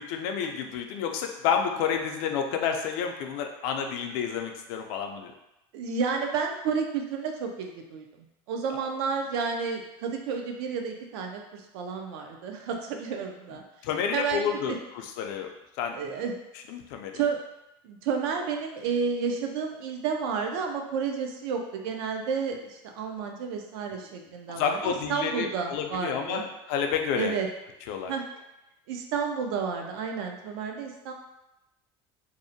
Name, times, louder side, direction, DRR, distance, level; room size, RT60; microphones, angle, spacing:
voice 1, 0.0-5.3 13.8-15.5 15.8-16.0 16.7-17.1 24.6-27.4 27.9-28.1, left 7 dB, 65° left, 4 dB, 0.4 m, -30 dB
voice 2, 5.7-8.0 8.5-13.6 14.1-14.8 15.9-16.3 17.1-17.4 17.8-26.5 27.1-27.5 28.1-28.2 28.9-31.1, right 5 dB, 75° right, 3 dB, 0.4 m, -31 dB
2.6 x 2.1 x 2.6 m, 0.91 s
cardioid pair, 155°, 13 cm